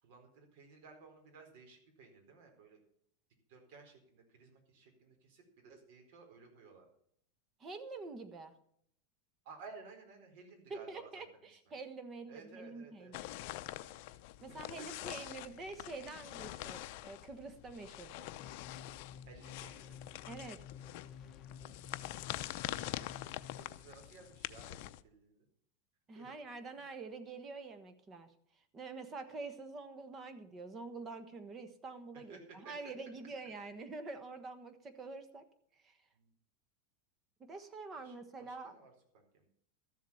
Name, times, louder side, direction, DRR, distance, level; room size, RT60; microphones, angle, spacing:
voice 1, 0.0-2.8 3.5-6.9 9.4-11.2 11.7-11.8 12.3-13.2 14.5-15.3 19.3-20.0 21.5-22.0 22.4-23.1 23.3-25.5 26.1-26.3 26.8-26.9 32.3-32.7 36.1-36.3 38.0-38.9 39.3-39.5, right 4 dB, 60° right, 3 dB, 4.3 m, -56 dB
voice 2, 7.6-8.5 10.7-13.2 14.4-18.3 20.3-20.6 26.1-28.3 28.7-35.4 35.8-36.0 37.5-38.7, right 3 dB, 20° right, 9 dB, 1.3 m, -46 dB
sound 1, 13.1-25.0, left 16 dB, 55° left, 0.6 m, -45 dB
sound 2, 18.4-23.6, left 7 dB, 30° left, 1.3 m, -52 dB
13.5 x 7.5 x 7.1 m, 0.67 s
supercardioid pair, 155°, 0 cm